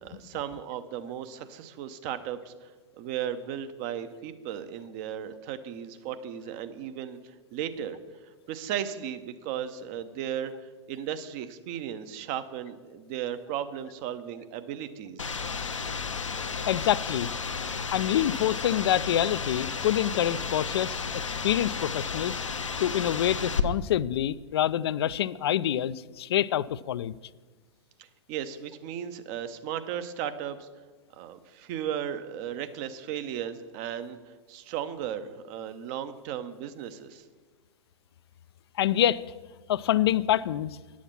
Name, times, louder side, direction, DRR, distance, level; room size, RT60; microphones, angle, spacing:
voice 1, 0.0-2.7 3.0-8.0 8.5-10.5 10.9-15.4 28.0-30.7 31.1-37.2, right 9 dB, 35° right, 11 dB, 0.7 m, -36 dB
sound 1, 15.2-23.6, left 5 dB, 80° left, 0.7 m, -33 dB
voice 2, 16.7-17.3 17.9-22.4 22.8-27.2 38.8-39.2 39.7-40.8, left 11 dB, 55° left, 18 dB, 0.4 m, -26 dB
10.5 x 7.2 x 5.9 m, 1.3 s
figure-of-eight pair, 105°, 16 cm